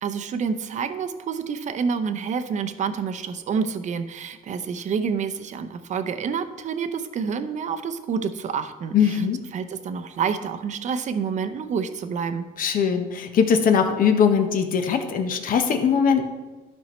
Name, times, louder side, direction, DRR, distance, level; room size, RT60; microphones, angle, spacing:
voice 1, 0.0-9.2 9.5-12.5, right 6 dB, 45° right, 9 dB, 0.7 m, -28 dB
voice 2, 8.9-9.4 12.6-16.3, left 7 dB, 55° left, 6 dB, 1.0 m, -21 dB
12.5 x 5.4 x 3.1 m, 1.2 s
cardioid pair, 110°, 17 cm